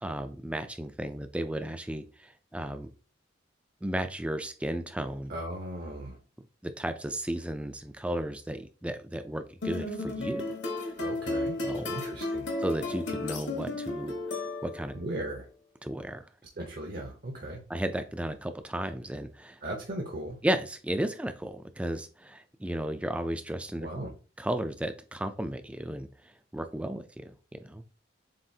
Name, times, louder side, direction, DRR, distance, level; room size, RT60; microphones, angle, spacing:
voice 1, 0.0-2.9 3.8-5.3 6.6-10.4 10.8-10.9 11.6-11.9 12.6-14.1 14.6-14.9 15.8-16.2 17.7-19.6 20.4-23.9 24.4-27.8, right 1 dB, 5° right, 9 dB, 0.3 m, -34 dB
voice 2, 5.3-6.2 11.0-11.6 11.9-12.5 14.9-15.5 16.5-17.6 19.6-20.4 23.8-24.1, right 1 dB, 50° right, 1 dB, 0.8 m, -37 dB
sound 1, 9.6-15.0, left 2 dB, 65° left, 1.2 m, -33 dB
7.4 x 2.6 x 2.7 m, 0.37 s
head